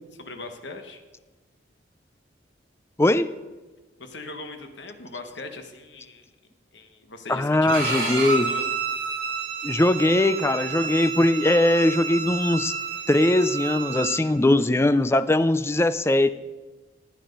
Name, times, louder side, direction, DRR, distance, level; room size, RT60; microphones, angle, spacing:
voice 1, 0.2-1.0 4.0-6.2 6.7-8.8, left 3 dB, 70° left, 6 dB, 1.3 m, -39 dB
voice 2, 3.0-3.3 7.3-8.5 9.6-12.7 13.1-16.3, left 1 dB, 15° left, 14 dB, 0.4 m, -20 dB
Bowed string instrument, 7.7-14.2, right 5 dB, 45° right, 3.2 m, -30 dB
14.5 x 9.2 x 5.3 m, 1.2 s
head